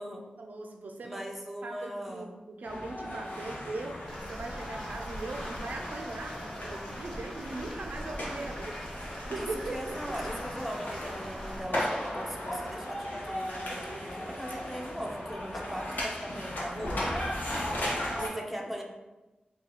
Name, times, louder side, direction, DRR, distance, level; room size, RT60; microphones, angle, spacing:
voice 1, 0.4-1.2 1.6-10.2 18.1-18.6, right 2 dB, 75° right, 3 dB, 0.4 m, -40 dB
voice 2, 1.0-2.3 9.4-17.0 18.3-18.8, equal, 5° right, 0 dB, 0.5 m, -39 dB
sound 1, 2.6-18.3, left 1 dB, 80° left, 0.8 m, -37 dB
sound 2, 4.1-11.6, equal, 25° left, 1.2 m, -43 dB
2.8 x 2.3 x 3.8 m, 1.1 s
wide cardioid pair, 80°, 3 cm